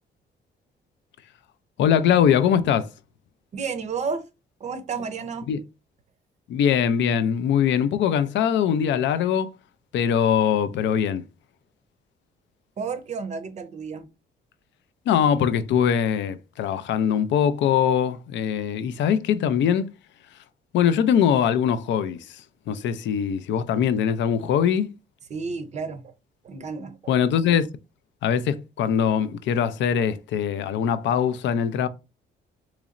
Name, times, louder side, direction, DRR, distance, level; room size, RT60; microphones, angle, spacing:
voice 1, 1.8-2.9 5.5-5.6 6.5-9.5 9.9-11.2 15.1-19.9 20.7-24.9 27.1-27.7 28.2-31.9, left 8 dB, 80° left, 0.4 m, -22 dB
voice 2, 3.5-4.3 4.6-5.5 12.8-14.1 25.3-26.1 26.4-27.0, right 5 dB, 40° right, 0.5 m, -31 dB
4.0 x 3.0 x 2.4 m
cardioid pair, 155°, 18 cm